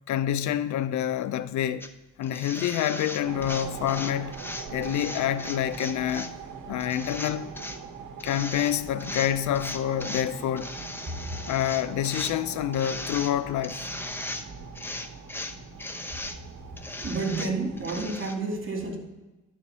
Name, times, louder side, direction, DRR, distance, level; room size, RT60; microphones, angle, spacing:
voice 1, 0.1-1.9 2.2-4.4 4.7-6.3 6.7-7.4 8.2-10.7 11.5-13.8, left 11 dB, 70° left, 0.5 m, -27 dB
sound 1, 1.8-1.9 2.2-6.3 6.8-7.8 8.2-8.7 9.0-10.3 10.6-12.3 12.7-13.3 13.6-14.5 14.7-16.4 16.8-18.3, left 2 dB, 5° left, 0.7 m, -37 dB
sound 2, 3.2-18.2, right 5 dB, 75° right, 1.2 m, -42 dB
voice 2, 16.9-19.0, right 3 dB, 45° right, 2.5 m, -30 dB
11.0 x 4.5 x 5.5 m
cardioid pair, 90°, 30 cm